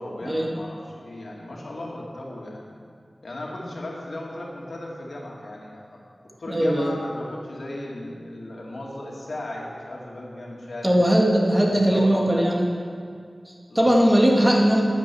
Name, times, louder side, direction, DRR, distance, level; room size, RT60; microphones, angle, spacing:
voice 1, 0.0-2.8 3.2-6.0 6.4-10.9 11.5-12.5 13.7-14.1, left 1 dB, 80° left, -2 dB, 2.3 m, -36 dB
voice 2, 6.5-6.9 10.8-12.7 13.5-14.8, equal, 15° right, -1 dB, 2.1 m, -19 dB
10.5 x 9.3 x 7.0 m, 2.2 s
wide cardioid pair, 50°, 0 cm